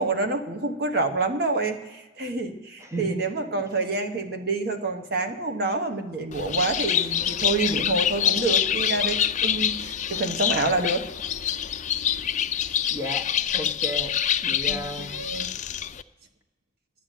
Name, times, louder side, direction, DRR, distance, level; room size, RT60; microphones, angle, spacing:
voice 1, 0.0-11.1 14.7-15.5, right 3 dB, 55° right, 6 dB, 1.1 m, -27 dB
voice 2, 2.8-3.2 3.5-3.6 12.9-13.3 13.5-14.1 14.4-15.1, equal, 15° right, 4 dB, 1.2 m, -33 dB
Bird, 6.3-16.0, left 9 dB, 40° left, 0.4 m, -26 dB
11.5 x 10.5 x 9.2 m, 1.2 s
head